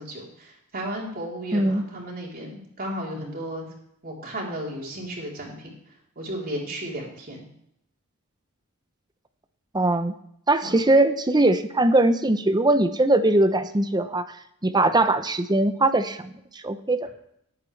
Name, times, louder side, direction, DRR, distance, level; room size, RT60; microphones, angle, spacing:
voice 1, 0.0-3.7 4.0-5.8 6.2-7.5 10.6-10.7, right 1 dB, 40° right, -2 dB, 3.7 m, -34 dB
voice 2, 1.5-1.8 9.7-10.1 10.5-14.4 14.6-17.1, right 2 dB, 20° right, 10 dB, 0.7 m, -21 dB
18.5 x 8.7 x 3.3 m, 0.75 s
head